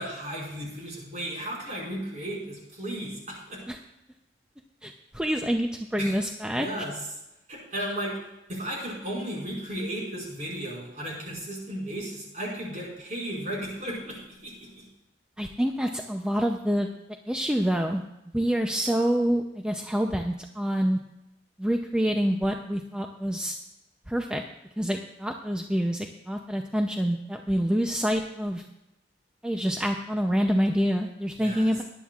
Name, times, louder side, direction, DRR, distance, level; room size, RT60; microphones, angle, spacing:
voice 1, 0.0-3.6 6.0-6.2 6.5-6.9 7.5-8.2 8.5-14.8 31.4-31.7, right 1 dB, 40° right, -3 dB, 5.2 m, -35 dB
voice 2, 4.8-6.7 15.4-16.9 17.3-18.0 18.3-21.0 21.6-23.6 24.1-24.4 24.8-28.6 29.4-31.8, equal, 5° right, 3 dB, 0.5 m, -27 dB
18.5 x 11.0 x 2.4 m, 0.91 s
head